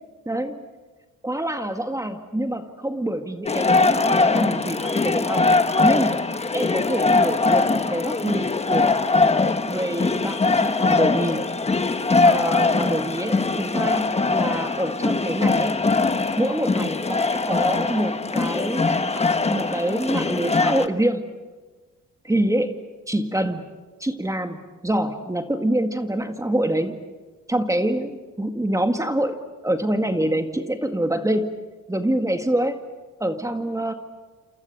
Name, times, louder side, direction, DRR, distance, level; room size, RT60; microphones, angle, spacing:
voice 1, 0.3-0.6 1.2-5.4 5.8-6.2 6.5-9.1 9.7-11.6 12.2-15.8 16.4-19.0 19.5-21.3 22.2-22.7 23.1-27.0 27.5-29.4 29.6-31.5 31.9-32.8 33.2-33.9, right 1 dB, 10° right, 6 dB, 2.0 m, -26 dB
sound 1, 3.5-20.9, left 3 dB, 20° left, 1.3 m, -21 dB
29.0 x 28.0 x 6.8 m, 1.3 s
cardioid pair, 90°, 30 cm